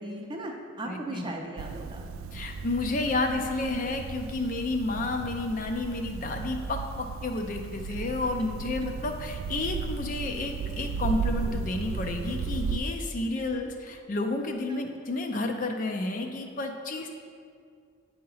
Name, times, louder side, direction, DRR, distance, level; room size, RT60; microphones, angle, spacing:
voice 1, 0.0-2.0 14.7-14.8, right 1 dB, 20° right, 1 dB, 0.5 m, -37 dB
voice 2, 0.9-1.3 2.3-17.2, left 2 dB, 40° left, 4 dB, 0.4 m, -31 dB
sound 1, 1.6-12.8, right 5 dB, 85° right, 0.3 m, -35 dB
8.4 x 2.8 x 5.5 m, 2.2 s
head